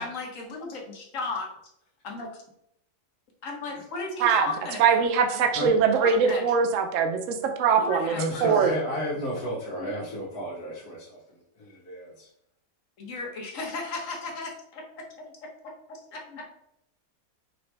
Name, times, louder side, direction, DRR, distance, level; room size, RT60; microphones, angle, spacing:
voice 1, 0.0-1.5 2.0-2.3 3.4-5.4 6.0-6.5 7.8-8.5 9.8-9.9 13.0-15.4 15.6-16.5, left 3 dB, 60° left, 1 dB, 1.3 m, -36 dB
voice 2, 4.8-8.1 8.4-8.8, right 6 dB, 65° right, 5 dB, 0.9 m, -22 dB
voice 3, 8.1-12.3, equal, 85° left, -6 dB, 1.6 m, -33 dB
5.2 x 3.0 x 3.3 m, 0.76 s
omnidirectional pair, 1.6 m